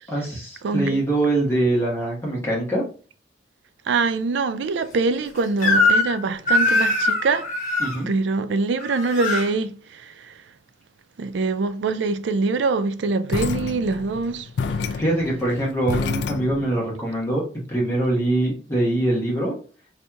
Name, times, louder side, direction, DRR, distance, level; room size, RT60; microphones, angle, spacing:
voice 1, 0.1-2.8 7.8-8.1 15.0-17.4 17.7-19.5, right 1 dB, 15° left, 1.2 m, -23 dB
voice 2, 0.6-1.0 3.9-7.5 8.1-10.3 11.2-14.5 14.9-15.0, right 3 dB, 70° right, 0.4 m, -24 dB
Crying sobbing / Screech, 5.6-6.2 6.5-8.0 8.8-9.5, left 2 dB, 40° left, 0.9 m, -21 dB
sound 1, 13.3-16.8, left 5 dB, 65° left, 0.3 m, -29 dB
4.2 x 2.6 x 2.3 m
head